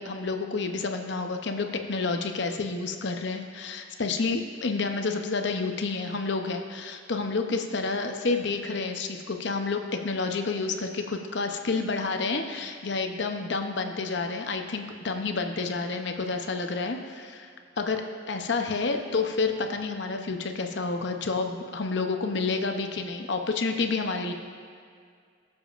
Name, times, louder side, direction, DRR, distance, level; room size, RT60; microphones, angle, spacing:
voice 1, 0.0-17.5 17.8-24.3, left 4 dB, 60° left, 5 dB, 0.7 m, -29 dB
20.5 x 7.1 x 2.5 m, 2.1 s
head